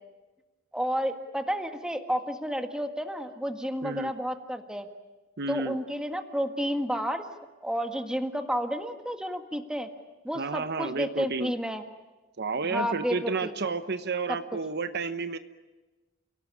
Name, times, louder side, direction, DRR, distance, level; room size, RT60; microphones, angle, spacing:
voice 1, 0.7-4.9 5.5-7.2 7.6-9.9 10.2-11.8 12.6-13.5, equal, 5° right, 6 dB, 1.7 m, -31 dB
voice 2, 3.8-4.1 5.4-5.8 10.3-11.5 12.4-15.4, right 4 dB, 55° right, 10 dB, 1.0 m, -31 dB
30.0 x 18.0 x 9.9 m, 1.2 s
head